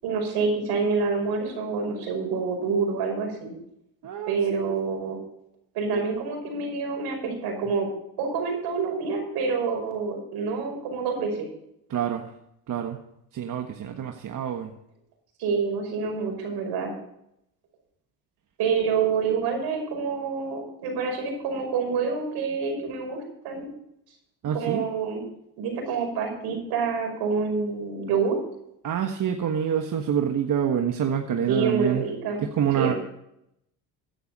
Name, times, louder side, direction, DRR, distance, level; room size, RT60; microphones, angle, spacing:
voice 1, 0.0-3.5 4.3-5.2 5.7-7.9 8.2-11.5 15.4-16.9 18.6-23.2 23.4-23.7 24.5-25.3 25.6-28.4 31.5-32.4 32.7-32.9, right 5 dB, 80° right, 2 dB, 5.5 m, -27 dB
voice 2, 4.0-4.8 11.9-12.3 12.7-13.0 13.3-14.7 24.4-24.8 28.8-32.0 32.4-32.9, right 8 dB, 55° right, 4 dB, 1.4 m, -27 dB
15.0 x 10.0 x 4.1 m, 0.77 s
supercardioid pair, 85°, 39 cm